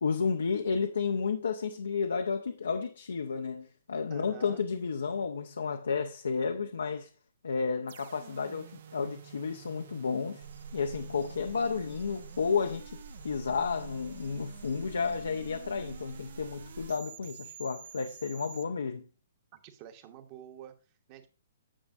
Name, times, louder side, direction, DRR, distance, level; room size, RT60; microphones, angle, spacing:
voice 1, 0.0-7.1 7.4-10.5 10.7-19.0, left 5 dB, 70° left, 0.7 m, -32 dB
voice 2, 4.1-4.7 19.5-20.8 21.1-21.3, right 10 dB, 35° right, 1.2 m, -49 dB
sound 1, 7.9-18.7, right 10 dB, 50° right, 0.6 m, -50 dB
sound 2, 10.4-16.9, right 4 dB, 85° right, 1.2 m, -48 dB
9.9 x 7.0 x 2.5 m
figure-of-eight pair, 120°, 0 cm